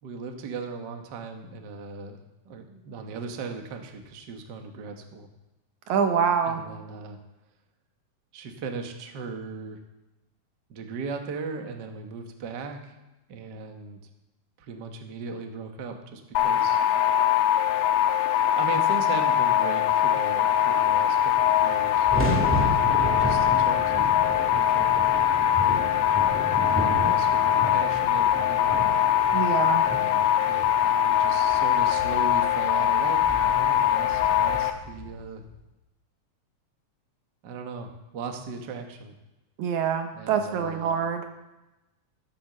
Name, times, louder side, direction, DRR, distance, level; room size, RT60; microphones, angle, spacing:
voice 1, 0.0-2.2 2.4-5.3 6.5-7.2 8.3-9.8 10.7-12.9 13.3-14.0 14.6-16.8 18.5-22.1 23.0-24.2 24.4-24.9 26.5-29.1 29.8-35.4 37.4-39.1 40.1-40.9, right 4 dB, 90° right, 4 dB, 0.9 m, -38 dB
voice 2, 5.9-6.6 29.3-29.8 39.6-41.2, right 7 dB, 65° right, 6 dB, 2.3 m, -25 dB
sound 1, 16.4-34.7, left 10 dB, 85° left, 2.6 m, -22 dB
sound 2, 21.3-35.5, equal, 5° right, 1.6 m, -33 dB
14.0 x 7.7 x 6.7 m, 0.99 s
omnidirectional pair, 4.0 m